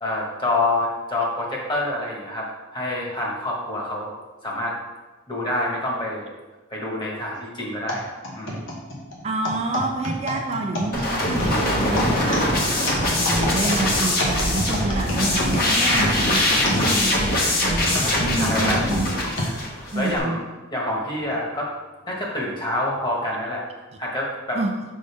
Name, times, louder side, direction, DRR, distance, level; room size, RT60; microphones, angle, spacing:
voice 1, 0.0-2.5 2.7-4.1 4.4-4.8 5.3-6.3 6.7-8.7 18.3-18.8 19.4-20.4 20.7-21.7 22.1-23.6 24.0-24.6, left 1 dB, 25° left, -3 dB, 1.5 m, -27 dB
sound 1, 7.9-17.4 17.9-19.5 20.2-20.3 21.1-21.4, left 1 dB, 85° left, 1.4 m, -29 dB
voice 2, 9.2-19.1 19.9-20.4 24.5-24.7, right 2 dB, 35° right, 3 dB, 0.4 m, -28 dB
sound 2, 10.9-20.2, left 1 dB, 50° left, 1.3 m, -22 dB
6.4 x 5.4 x 3.5 m, 1.2 s
head